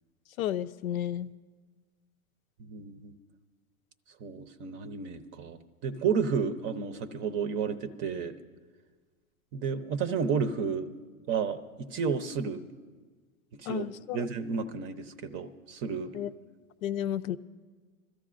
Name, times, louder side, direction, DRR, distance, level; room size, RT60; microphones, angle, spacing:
voice 1, 0.4-1.3 13.7-14.2 16.1-16.3 16.8-17.4, left 11 dB, 70° left, 13 dB, 0.6 m, -32 dB
voice 2, 2.6-3.1 4.2-8.3 9.5-10.9 11.3-12.6 13.5-13.9 14.1-16.1, right 6 dB, 25° right, 10 dB, 0.7 m, -32 dB
24.5 x 13.5 x 2.5 m, 1.4 s
hypercardioid pair, 120°, 43 cm